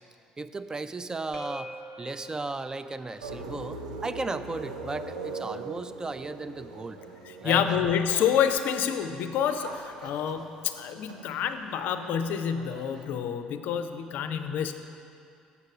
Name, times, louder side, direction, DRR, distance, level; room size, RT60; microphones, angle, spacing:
voice 1, 0.4-1.7 2.0-7.0 7.4-7.8, right 3 dB, 20° right, 12 dB, 0.3 m, -35 dB
sound 1, 1.3-7.1, left 1 dB, 20° left, 0.8 m, -48 dB
sound 2, 3.2-13.0, right 3 dB, 80° right, 0.5 m, -42 dB
voice 2, 7.3-14.7, left 8 dB, 55° left, 9 dB, 0.4 m, -28 dB
7.1 x 6.4 x 4.9 m, 2.5 s
figure-of-eight pair, 55°, 4 cm